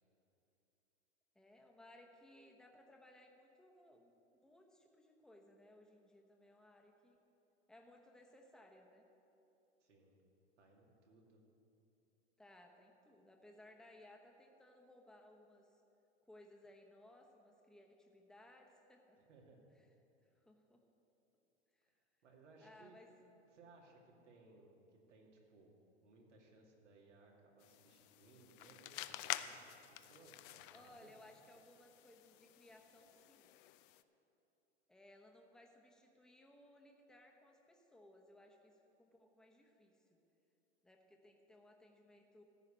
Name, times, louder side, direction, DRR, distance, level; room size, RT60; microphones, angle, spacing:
voice 1, 1.3-4.1 4.4-7.2 7.7-9.0 12.4-15.8 16.3-19.2 20.3-20.8 21.7-21.9 22.6-23.1 30.7-33.5 34.9-40.2 40.8-42.4, left 1 dB, ahead, 1 dB, 1.0 m, -62 dB
voice 2, 9.8-10.2 10.6-11.4 19.2-19.6 22.2-23.0 23.5-25.7 26.0-31.1, right 3 dB, 85° right, -1 dB, 2.3 m, -64 dB
sound 1, 27.6-34.0, left 14 dB, 50° left, 0.5 m, -49 dB
14.5 x 4.9 x 8.9 m, 2.9 s
hypercardioid pair, 115°, 35 cm